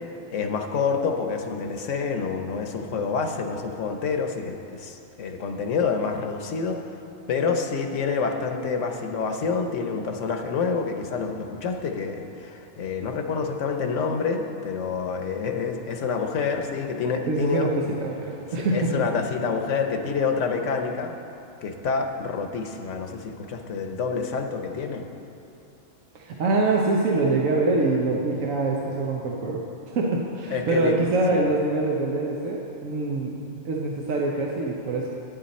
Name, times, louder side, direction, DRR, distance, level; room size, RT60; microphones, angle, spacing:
voice 1, 0.3-7.0 7.3-17.7 18.6-21.1 21.6-25.0 30.5-31.0 31.3-31.4, left 5 dB, 65° left, 5 dB, 1.1 m, -27 dB
voice 2, 17.3-19.1 26.1-29.6 29.9-33.3 33.6-35.1, right 3 dB, 75° right, -2 dB, 1.2 m, -24 dB
11.5 x 9.5 x 4.2 m, 2.9 s
omnidirectional pair, 1.4 m